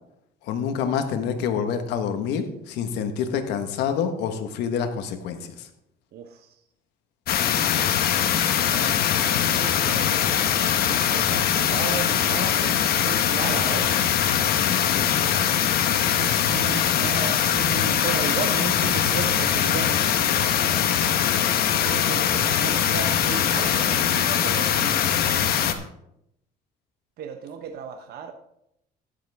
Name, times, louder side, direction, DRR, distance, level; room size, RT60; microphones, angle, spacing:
voice 1, 0.5-5.7 14.5-15.1, left 7 dB, 85° left, 7 dB, 1.4 m, -27 dB
voice 2, 6.1-6.6 8.5-9.0 9.4-10.5 10.8-13.9 16.1-20.8 21.5-25.1 27.2-28.3, right 7 dB, 70° right, 6 dB, 0.9 m, -35 dB
sound 1, 7.3-25.7, left 9 dB, 65° left, 1.1 m, -22 dB
13.0 x 10.0 x 3.5 m, 0.79 s
cardioid pair, 110°, 17 cm